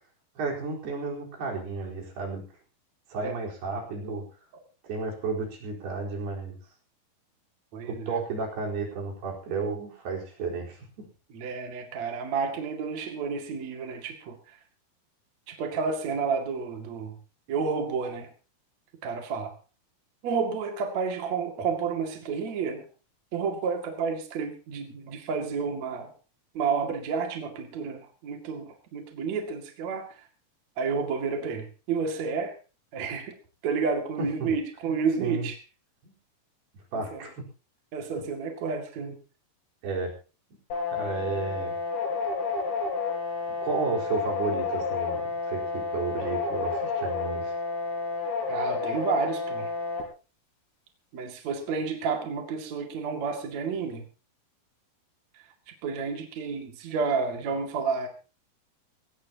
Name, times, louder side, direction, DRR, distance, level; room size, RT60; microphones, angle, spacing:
voice 1, 0.4-2.4 3.1-4.2 4.8-6.6 7.8-11.1 34.2-34.5 34.9-35.5 36.0-36.1 36.9-37.5 39.8-40.1 40.9-41.7 43.6-47.5, right 4 dB, 85° right, -1 dB, 6.4 m, -32 dB
voice 2, 7.7-8.2 11.3-14.4 15.5-17.2 17.5-18.3 19.0-19.5 20.2-22.8 23.3-26.1 26.5-30.1 30.8-32.5 32.9-33.3 33.6-35.6 36.9-37.2 37.9-39.1 48.5-49.7 51.1-54.0 55.8-58.1, right 5 dB, 50° right, 3 dB, 3.2 m, -30 dB
sound 1, 40.7-50.0, left 4 dB, 80° left, 7.3 m, -30 dB
20.5 x 18.0 x 2.9 m, 0.35 s
omnidirectional pair, 4.5 m